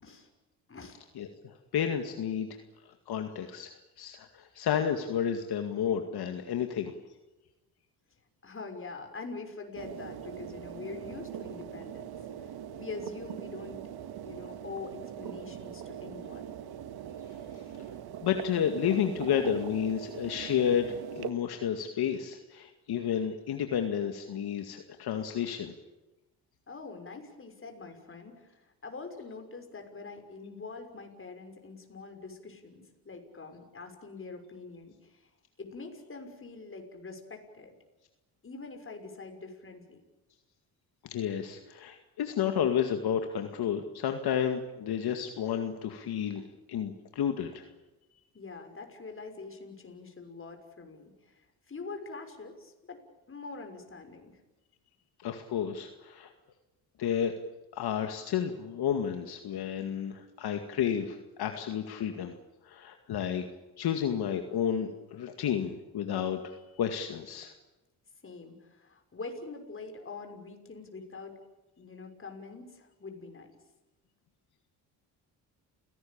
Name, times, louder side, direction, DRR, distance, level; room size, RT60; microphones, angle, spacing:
voice 1, 1.2-2.6 3.1-3.7 4.0-6.9 18.2-25.7 41.1-46.4 46.7-47.7 55.2-56.3 57.0-57.3 57.7-62.4 62.6-63.5 63.8-67.5, left 8 dB, 65° left, 6 dB, 2.2 m, -31 dB
voice 2, 8.4-12.2 12.4-13.8 14.2-16.5 26.7-35.3 35.6-37.7 38.4-40.0 48.3-53.0 53.3-54.3 68.2-71.4 71.8-73.5, left 4 dB, 30° left, 5 dB, 6.1 m, -44 dB
sound 1, 9.7-21.3, right 10 dB, 65° right, 1.9 m, -42 dB
29.0 x 18.0 x 8.8 m, 1.1 s
cardioid pair, 80°, 41 cm